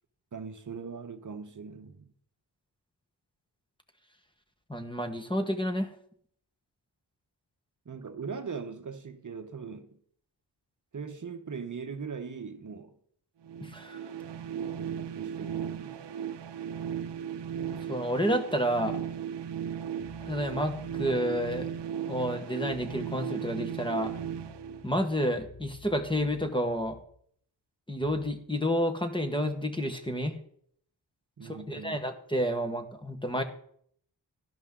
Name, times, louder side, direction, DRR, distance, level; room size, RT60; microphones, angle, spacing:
voice 1, 0.3-2.1 7.9-10.0 10.9-13.0 14.5-16.0 31.4-32.1, right 5 dB, 45° right, 0.9 m, -40 dB
voice 2, 4.7-5.9 13.6-14.0 17.9-19.0 20.3-21.7 22.1-24.1 24.8-27.0 27.9-30.4 31.4-33.4, equal, 10° left, 1.3 m, -30 dB
sound 1, 13.4-25.4, right 8 dB, 70° right, 0.7 m, -36 dB
sound 2, 20.0-21.8 22.7-23.1 24.0-27.2 28.0-28.4, left 5 dB, 90° left, 2.2 m, -51 dB
12.0 x 11.5 x 3.7 m
wide cardioid pair, 90°, 43 cm